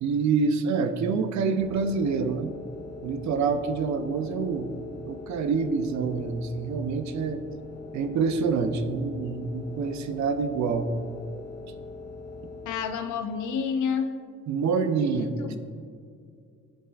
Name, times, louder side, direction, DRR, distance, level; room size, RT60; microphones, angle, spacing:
voice 1, 0.0-2.5 3.0-4.7 5.1-7.4 7.9-10.9 14.5-15.6, right 5 dB, 65° right, 8 dB, 0.6 m, -26 dB
sound 1, 1.6-13.3, left 3 dB, 55° left, 1.7 m, -42 dB
voice 2, 12.7-14.1 15.1-15.6, left 6 dB, 75° left, 7 dB, 0.7 m, -29 dB
11.0 x 5.4 x 2.4 m, 2.3 s
cardioid pair, 90°, 30 cm